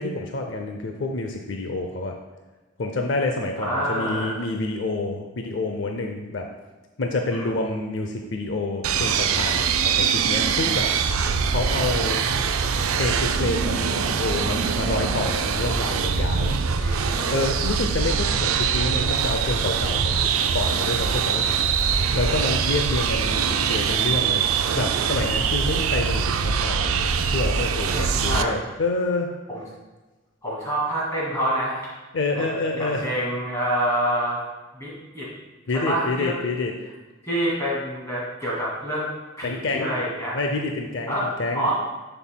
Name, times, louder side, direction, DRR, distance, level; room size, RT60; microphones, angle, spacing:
voice 1, 0.0-2.2 2.8-6.5 7.0-10.9 11.5-12.3 12.9-16.6 17.3-20.2 20.5-21.6 22.1-24.4 24.7-29.3 32.1-33.1 35.7-36.7 39.4-40.0 40.3-41.7, left 2 dB, 60° left, 3 dB, 0.5 m, -28 dB
voice 2, 3.6-4.4 7.3-7.5 16.8-17.3 27.9-28.6 29.5-29.6 30.4-31.9 32.3-34.4 34.7-35.3 35.7-36.4 37.2-39.1 39.4-40.4 41.1-41.7, equal, 15° left, -7 dB, 2.1 m, -27 dB
sound 1, 8.8-28.4, right 6 dB, 90° right, 0.4 m, -23 dB
11.0 x 5.5 x 2.2 m, 1.2 s
head